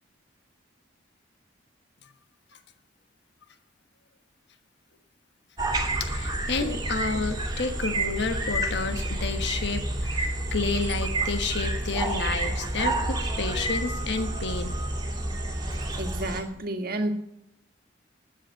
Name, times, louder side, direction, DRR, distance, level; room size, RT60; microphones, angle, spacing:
sound 1, 5.6-16.4, right 1 dB, 25° right, 2.6 m, -29 dB
voice 1, 6.0-14.8, left 4 dB, 65° left, 8 dB, 1.3 m, -30 dB
voice 2, 16.0-17.1, right 1 dB, 55° right, 5 dB, 1.8 m, -31 dB
12.5 x 8.2 x 9.2 m, 0.83 s
head